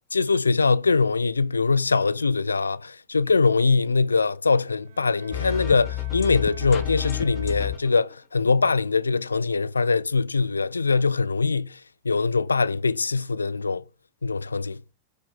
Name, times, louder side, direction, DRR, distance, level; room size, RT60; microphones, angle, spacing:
voice 1, 0.1-11.8 12.0-13.8 14.2-14.9, left 4 dB, 75° left, 0.4 m, -22 dB
Bowed string instrument, 4.8-8.3, right 9 dB, 65° right, 1.3 m, -49 dB
sound 1, 5.3-8.0, left 15 dB, 35° left, 1.1 m, -30 dB
8.2 x 4.2 x 4.9 m
figure-of-eight pair, 90°, 0 cm